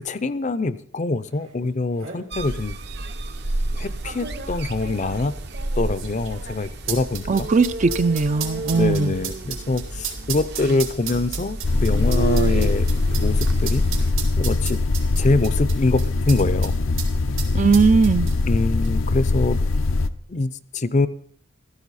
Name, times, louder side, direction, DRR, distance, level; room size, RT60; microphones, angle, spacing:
voice 1, 0.0-2.8 3.7-5.3 5.8-7.5 8.7-13.8 14.4-14.8 15.2-16.0 16.3-16.7 18.5-19.6 20.3-21.1, left 3 dB, 35° left, 14 dB, 0.5 m, -24 dB
sound 1, 1.5-1.6 1.8-2.2 3.0-3.1 4.0-16.7 17.0-17.1 17.4-18.6 18.8-18.9, right 8 dB, 85° right, 3.0 m, -34 dB
sound 2, 2.3-14.1, right 2 dB, 55° right, 0.9 m, -31 dB
voice 2, 7.3-9.1 17.5-18.3, right 4 dB, 40° right, 13 dB, 0.4 m, -19 dB
sound 3, 11.6-20.1, left 3 dB, 85° left, 0.7 m, -22 dB
15.0 x 14.0 x 4.1 m, 0.64 s
head